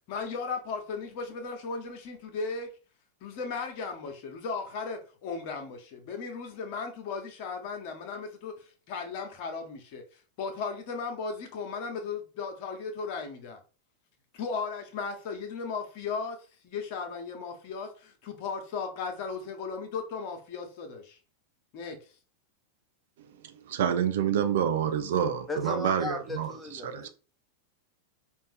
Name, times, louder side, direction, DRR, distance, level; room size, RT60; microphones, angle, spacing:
voice 1, 0.1-2.7 3.2-10.0 10.4-13.6 14.3-16.4 16.6-21.2 21.7-22.0, left 5 dB, 45° left, 1.1 m, -36 dB
voice 2, 23.4-27.1, right 8 dB, 55° right, 0.6 m, -28 dB
voice 3, 25.5-27.1, left 3 dB, 10° left, 1.0 m, -36 dB
5.2 x 2.7 x 3.5 m
figure-of-eight pair, 90°, 0 cm